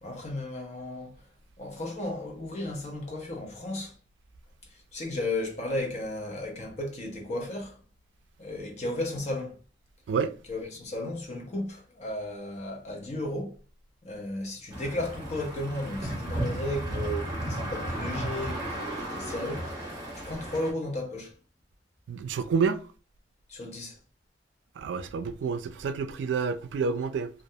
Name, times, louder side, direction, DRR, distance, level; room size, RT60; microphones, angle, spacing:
voice 1, 0.0-1.2 1.6-4.0 4.7-7.8 8.4-9.6 10.5-13.6 14.0-19.7 20.2-21.3 23.5-24.0, left 1 dB, 40° left, 0.7 m, -34 dB
sound 1, 14.7-20.7, right 1 dB, 25° right, 0.9 m, -34 dB
voice 2, 22.1-22.8 24.8-27.3, right 5 dB, 85° right, 0.3 m, -28 dB
2.3 x 2.1 x 2.7 m
head